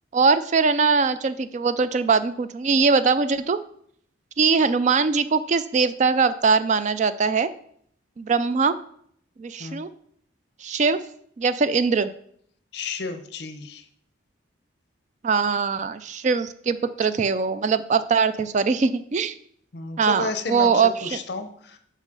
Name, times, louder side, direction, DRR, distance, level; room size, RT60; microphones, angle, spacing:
voice 1, 0.1-3.6 4.4-7.5 8.2-8.8 9.4-9.9 10.6-11.0 11.4-12.1 15.2-19.3 20.0-21.2, right 5 dB, 40° right, 14 dB, 0.3 m, -21 dB
voice 2, 12.7-13.8 19.7-21.8, left 3 dB, 60° left, 8 dB, 0.8 m, -32 dB
6.2 x 5.6 x 5.3 m, 0.66 s
head